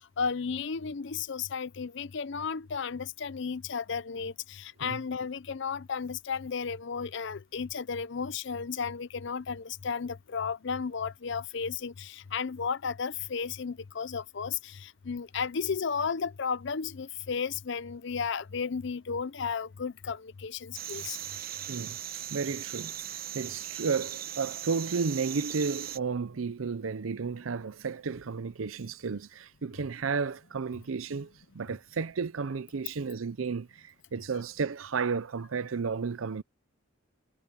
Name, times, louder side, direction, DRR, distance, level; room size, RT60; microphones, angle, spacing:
voice 1, 0.2-21.2, left 6 dB, 60° left, 0.6 m, -34 dB
sound 1, 20.7-26.0, right 11 dB, 45° right, 0.9 m, -39 dB
voice 2, 22.3-36.4, right 5 dB, 85° right, 0.6 m, -33 dB
head